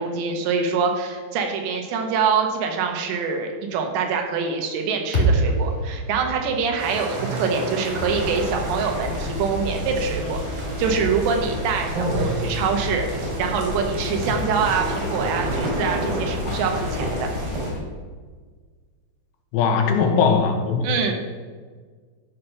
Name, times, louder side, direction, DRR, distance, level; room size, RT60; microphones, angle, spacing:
voice 1, 0.0-10.4 10.8-17.3 20.8-21.1, right 5 dB, 85° right, 3 dB, 3.4 m, -25 dB
sound 1, 5.1-9.4, right 2 dB, 20° left, 2.0 m, -26 dB
sound 2, 6.8-17.7, right 1 dB, 65° right, 4.4 m, -30 dB
sound 3, 7.9-17.8, left 2 dB, 60° left, 1.7 m, -31 dB
voice 2, 19.5-20.9, left 5 dB, 85° left, 5 dB, 3.1 m, -19 dB
12.5 x 5.6 x 5.8 m, 1.5 s
omnidirectional pair, 4.9 m